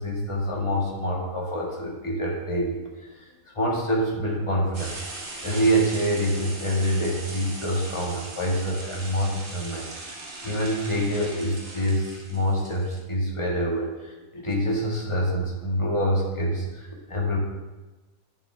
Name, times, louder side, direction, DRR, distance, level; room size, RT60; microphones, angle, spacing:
voice 1, 0.0-2.8 3.1-3.3 3.5-10.2 10.4-17.4, equal, 20° left, -3 dB, 1.7 m, -26 dB
sound 1, 4.7-13.0, right 2 dB, 55° right, 1.6 m, -39 dB
10.0 x 6.7 x 3.4 m, 1.1 s
omnidirectional pair, 1.6 m